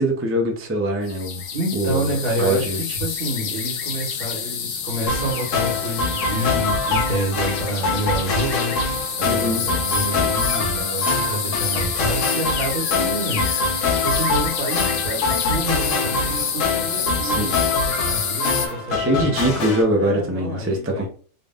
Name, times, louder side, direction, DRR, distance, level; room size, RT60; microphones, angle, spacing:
voice 1, 0.0-1.4 1.7-2.1 2.4-2.8 9.2-9.6 17.2-17.5 18.9-21.1, equal, 20° right, 2 dB, 0.4 m, -22 dB
sound 1, 1.1-18.7, left 7 dB, 90° left, 1.1 m, -28 dB
voice 2, 1.5-13.5 14.0-19.3 19.9-21.1, right 1 dB, 70° right, -3 dB, 2.0 m, -28 dB
sound 2, 5.1-19.8, left 3 dB, 65° left, 1.2 m, -24 dB
3.7 x 3.4 x 2.4 m, 0.43 s
omnidirectional pair, 1.5 m